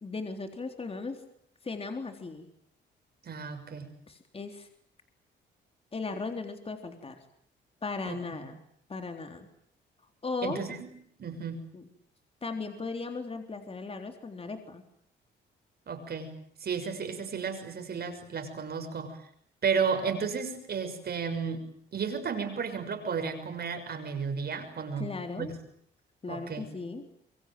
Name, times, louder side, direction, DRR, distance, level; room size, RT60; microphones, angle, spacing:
voice 1, 0.0-1.2 1.6-2.5 4.1-4.7 5.9-7.2 7.8-8.6 8.9-9.5 10.2-10.6 11.7-11.8 12.4-14.8 25.0-25.5 26.2-27.1, left 4 dB, 30° left, 6 dB, 3.7 m, -37 dB
voice 2, 3.2-3.9 8.1-8.4 10.4-10.9 11.2-11.6 15.9-16.3 16.6-19.2 19.6-21.6 21.9-25.1 25.4-25.5 26.3-26.7, right 6 dB, 55° right, 6 dB, 6.4 m, -33 dB
26.5 x 23.0 x 9.2 m, 0.66 s
cardioid pair, 90°, 20 cm